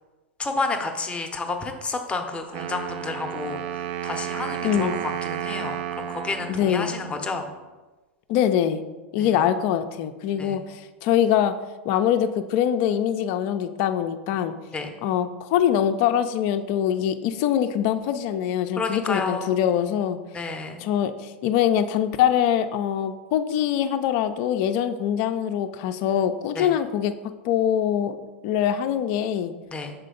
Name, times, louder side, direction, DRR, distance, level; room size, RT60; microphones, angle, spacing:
voice 1, 0.4-7.4 9.2-9.4 10.4-10.6 14.7-14.9 18.8-19.6 20.3-20.8 26.5-26.7 29.7-29.9, left 3 dB, 15° left, 5 dB, 0.8 m, -30 dB
Wind instrument woodwind instrument, 2.5-7.5, right 10 dB, 55° right, 0.5 m, -32 dB
voice 2, 4.6-5.0 6.5-6.9 8.3-8.8 9.1-11.5 11.8-14.5 15.0-20.2 20.8-27.1 27.4-28.2 28.4-29.5, left 10 dB, 50° left, 9 dB, 0.5 m, -23 dB
6.5 x 4.3 x 3.8 m, 1.2 s
hypercardioid pair, 95°, 7 cm